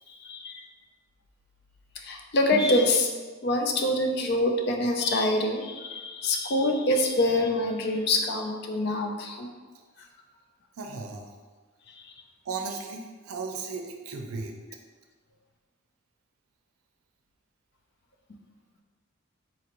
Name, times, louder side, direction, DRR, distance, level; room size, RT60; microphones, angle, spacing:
voice 1, 0.1-0.7 2.0-3.1 3.4-9.5 11.9-12.1, left 1 dB, 50° left, 3 dB, 0.4 m, -25 dB
voice 2, 10.8-11.3 12.4-14.5, right 4 dB, 90° right, 3 dB, 0.5 m, -36 dB
4.0 x 2.5 x 2.9 m, 1.4 s
head